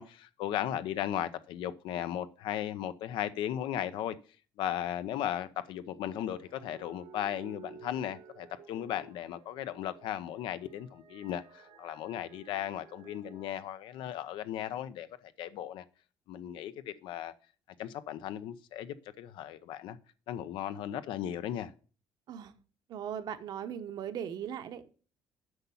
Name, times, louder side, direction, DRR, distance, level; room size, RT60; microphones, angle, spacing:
voice 1, 0.0-4.2 4.6-15.8 16.3-17.3 17.8-20.0 20.3-21.7, left 11 dB, 80° left, 0.8 m, -36 dB
sound 1, 6.2-13.5, right 6 dB, 85° right, 3.0 m, -54 dB
voice 2, 22.9-24.9, right 9 dB, 55° right, 1.0 m, -38 dB
8.0 x 5.8 x 7.0 m
cardioid pair, 145°, 8 cm